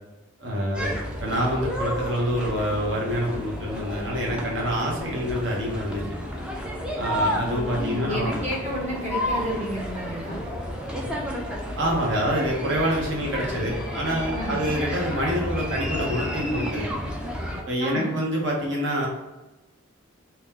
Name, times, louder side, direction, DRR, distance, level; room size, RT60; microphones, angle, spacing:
voice 1, 0.4-0.9 1.2-6.0 7.0-8.3 11.8-16.9 17.7-19.1, equal, 55° right, -2 dB, 1.0 m, -26 dB
sound 1, 0.7-17.6, equal, 5° right, 0.4 m, -31 dB
voice 2, 7.7-10.4 14.3-14.6 17.8-18.2, equal, 30° right, -4 dB, 1.1 m, -31 dB
3.0 x 2.8 x 3.6 m, 1.1 s
head